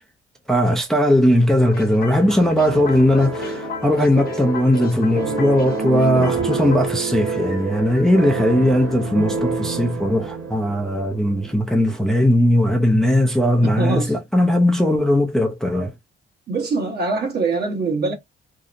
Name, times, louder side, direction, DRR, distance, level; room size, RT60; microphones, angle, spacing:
voice 1, 0.5-15.9, left 1 dB, ahead, 0.5 m, -18 dB
sound 1, 1.6-10.8, left 4 dB, 50° left, 0.5 m, -37 dB
sound 2, 2.7-11.7, right 4 dB, 85° right, 0.8 m, -28 dB
voice 2, 13.6-14.1 16.5-18.1, right 3 dB, 55° right, 1.1 m, -23 dB
2.8 x 2.0 x 2.5 m
cardioid pair, 90°, 20 cm